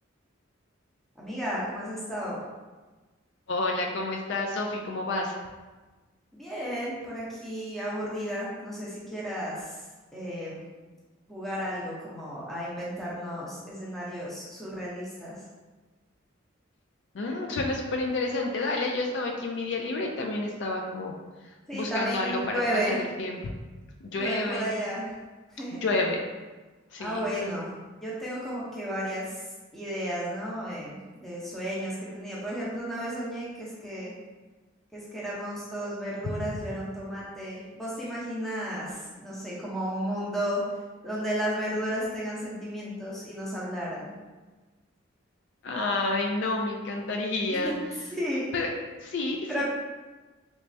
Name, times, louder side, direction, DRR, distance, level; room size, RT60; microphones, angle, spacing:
voice 1, 1.2-2.4 6.3-9.8 10.1-10.6 11.3-15.4 21.7-23.0 24.1-25.1 25.5-25.8 27.0-27.7 28.0-29.4 29.7-34.1 34.9-40.6 41.0-44.1 47.5-47.7 48.1-48.5 49.5-49.7, equal, ahead, -7 dB, 0.7 m, -33 dB
voice 2, 3.5-5.4 17.1-21.2 21.7-23.5 24.0-24.7 25.7-26.2 26.9-27.5 36.4-36.5 45.6-47.7 48.5-48.7 49.0-49.7, left 2 dB, 60° left, 1 dB, 0.4 m, -30 dB
3.3 x 3.1 x 2.6 m, 1.3 s
head